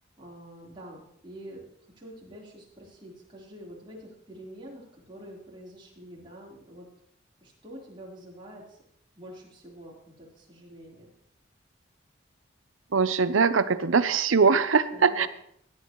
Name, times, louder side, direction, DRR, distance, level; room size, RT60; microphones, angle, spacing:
voice 1, 0.2-1.7 1.9-6.9 7.4-8.8 9.2-11.1 14.9-15.3, equal, 25° right, -5 dB, 3.8 m, -46 dB
voice 2, 12.9-15.3, right 5 dB, 90° right, 13 dB, 0.7 m, -22 dB
17.5 x 10.5 x 3.1 m, 0.71 s
head